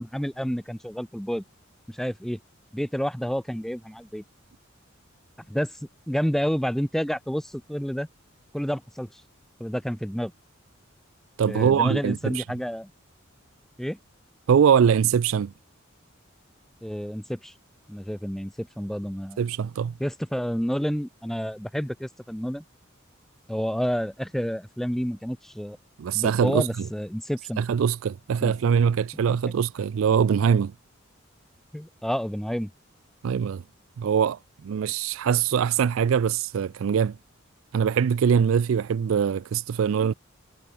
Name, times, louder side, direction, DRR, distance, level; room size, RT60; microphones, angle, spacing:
voice 1, 0.0-1.4 1.9-2.4 2.7-4.2 5.5-5.8 6.1-8.1 8.5-9.2 9.6-10.3 11.5-12.9 13.8-14.0 16.8-17.5 17.9-19.4 20.0-22.6 23.5-25.8 26.1-27.6 28.4-28.6 29.1-29.5 31.7-32.7, equal, ahead, 0.8 m, -29 dB
voice 2, 11.4-12.4 14.5-15.5 19.4-19.9 26.0-26.7 27.6-30.7 33.2-33.6 34.0-37.2 37.7-40.1, right 7 dB, 80° right, 0.4 m, -22 dB
head